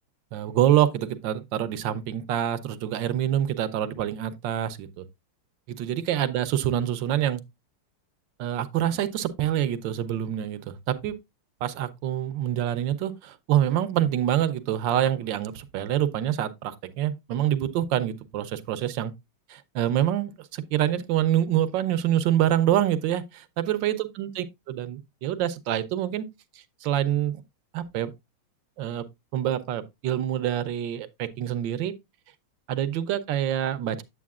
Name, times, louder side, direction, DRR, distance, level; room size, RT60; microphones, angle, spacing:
voice 1, 0.3-5.0 5.7-7.4 8.4-11.2 11.6-19.1 19.5-26.2 26.8-27.4 27.7-28.1 28.8-29.0 29.3-31.9 32.7-34.0, right 11 dB, 70° right, 1.2 m, -26 dB
8.5 x 7.8 x 2.3 m
omnidirectional pair, 2.4 m